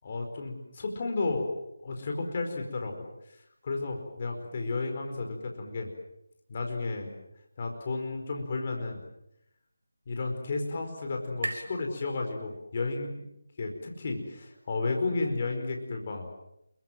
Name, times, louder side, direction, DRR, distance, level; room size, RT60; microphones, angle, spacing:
voice 1, 0.0-1.5 1.8-2.9 3.6-5.9 6.5-7.1 7.6-9.0 10.1-13.3 13.6-16.3, left 3 dB, 30° left, 3 dB, 4.8 m, -32 dB
sound 1, 9.1-12.8, right 2 dB, 50° right, 3.8 m, -43 dB
27.5 x 23.5 x 7.6 m, 0.80 s
figure-of-eight pair, 170°, 0 cm